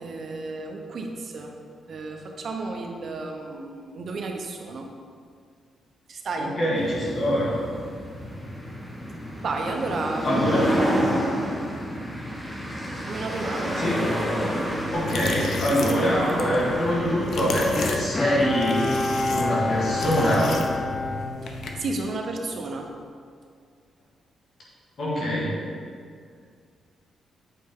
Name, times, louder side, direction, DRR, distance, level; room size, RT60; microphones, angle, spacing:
voice 1, 0.0-1.5 1.9-4.9 6.1-6.6 9.4-10.6 13.1-13.8 21.4-22.9, right 3 dB, 50° right, 2 dB, 0.8 m, -32 dB
voice 2, 6.4-7.6 10.2-10.7 13.7-14.0 14.9-18.9 19.3-20.5 25.0-25.6, equal, 50° left, -6 dB, 1.6 m, -24 dB
sound 1, 6.7-20.3, equal, 5° left, 1.1 m, -30 dB
sound 2, 14.9-21.9, left 3 dB, 65° left, 0.7 m, -34 dB
Bowed string instrument, 17.7-22.2 22.7-22.8, left 2 dB, 25° left, 0.3 m, -28 dB
8.4 x 4.3 x 3.7 m, 2.2 s
cardioid pair, 120°, 0 cm